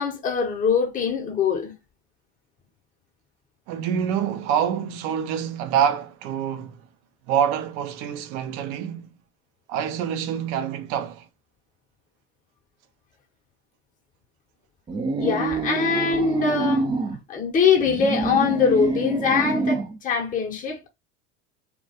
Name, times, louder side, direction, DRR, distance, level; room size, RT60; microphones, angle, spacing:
voice 1, 0.0-1.7 15.2-16.9 17.3-20.9, left 6 dB, 25° left, 0.7 m, -22 dB
voice 2, 3.7-6.8 7.3-9.1 9.7-11.3, right 8 dB, 55° right, 0.6 m, -26 dB
sound 1, 14.9-17.2 17.8-20.0, right 3 dB, 15° right, 0.3 m, -26 dB
2.2 x 2.2 x 2.5 m
hypercardioid pair, 85°, 34 cm